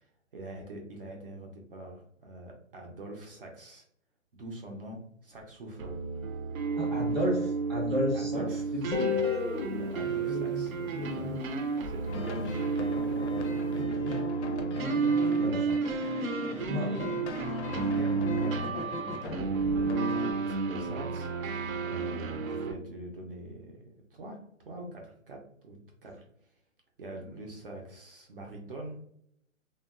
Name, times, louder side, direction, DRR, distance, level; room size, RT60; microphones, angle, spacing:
voice 1, 0.0-3.8 4.3-6.1 6.7-6.9 8.1-9.2 9.7-11.4 11.8-12.7 13.7-14.2 15.4-15.9 16.4-17.4 17.9-19.7 20.3-21.3 21.8-23.8 24.1-26.5 27.0-29.0, right 1 dB, 45° right, 0 dB, 0.5 m, -44 dB
sound 1, 5.8-22.7, right 4 dB, 80° right, 0.7 m, -31 dB
voice 2, 6.7-9.1 10.0-11.5 13.7-14.2 14.7-15.7 16.6-17.0, left 1 dB, ahead, -11 dB, 0.6 m, -34 dB
Guitar, 8.9-11.9, left 7 dB, 90° left, 0.7 m, -34 dB
sound 2, 12.1-20.3, left 2 dB, 55° left, 0.5 m, -38 dB
2.9 x 2.2 x 2.2 m, 0.70 s
hypercardioid pair, 160°, 40 cm